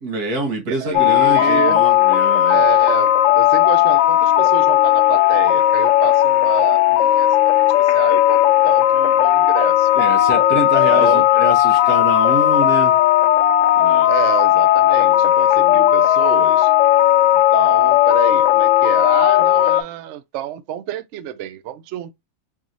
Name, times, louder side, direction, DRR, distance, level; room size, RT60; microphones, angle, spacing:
voice 1, 0.0-2.7 3.3-3.4 9.9-13.0 13.8-14.1, right 2 dB, 90° right, 1.9 m, -26 dB
voice 2, 0.7-1.8 2.4-9.9 10.8-11.3 14.0-16.7 17.5-22.1, right 12 dB, 70° right, 0.7 m, -28 dB
sound 1, 0.9-19.8, left 13 dB, 65° left, 0.9 m, -15 dB
4.6 x 2.9 x 2.6 m
omnidirectional pair, 1.6 m